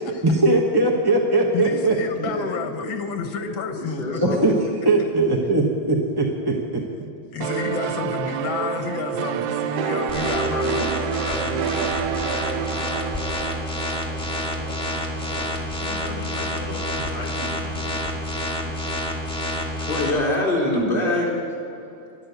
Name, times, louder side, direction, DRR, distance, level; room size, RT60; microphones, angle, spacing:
voice 1, 0.2-1.9 4.2-4.5 4.8-6.5 14.6-14.7 15.1-15.6 16.7-17.2, right 2 dB, 20° right, 0 dB, 0.8 m, -21 dB
voice 2, 1.5-4.2 7.3-11.9, left 5 dB, 75° left, 6 dB, 1.9 m, -30 dB
voice 3, 2.2-2.7 3.4-4.6 19.8-21.3, left 1 dB, 25° left, -4 dB, 3.4 m, -25 dB
sound 1, 7.4-14.9, right 7 dB, 70° right, 1.2 m, -28 dB
sound 2, 10.1-20.1, left 1 dB, 5° left, 2.0 m, -28 dB
voice 4, 15.8-18.0, left 2 dB, 55° left, 0 dB, 2.0 m, -37 dB
12.0 x 11.5 x 8.1 m, 2.7 s
omnidirectional pair, 2.2 m